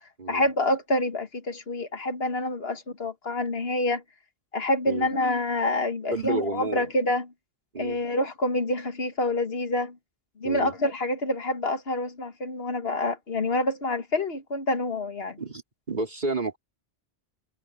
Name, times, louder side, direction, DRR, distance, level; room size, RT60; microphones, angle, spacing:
voice 1, 0.3-4.0 4.5-7.3 7.8-10.0 10.4-15.4, left 1 dB, 60° left, 2.0 m, -27 dB
voice 2, 6.1-6.9 7.7-8.0 10.4-10.7 15.4-15.6 15.9-16.6, right 3 dB, 40° right, 3.1 m, -30 dB
omnidirectional pair, 1.2 m